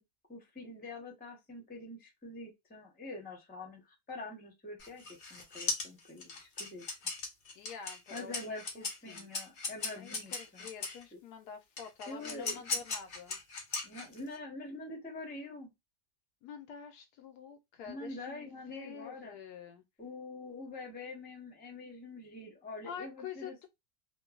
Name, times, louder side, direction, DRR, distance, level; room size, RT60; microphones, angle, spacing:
voice 1, 0.3-3.8 4.1-6.8 8.1-10.7 11.1-11.2 12.1-12.8 13.8-15.7 17.9-19.3 20.0-23.7, left 2 dB, 10° left, 0.6 m, -45 dB
sound 1, 4.8-11.0 11.8-14.4, left 3 dB, 50° left, 0.6 m, -38 dB
voice 2, 7.5-9.3 9.9-13.4 16.4-19.8 22.8-23.7, left 7 dB, 75° left, 1.1 m, -47 dB
2.9 x 2.2 x 2.3 m
omnidirectional pair, 1.7 m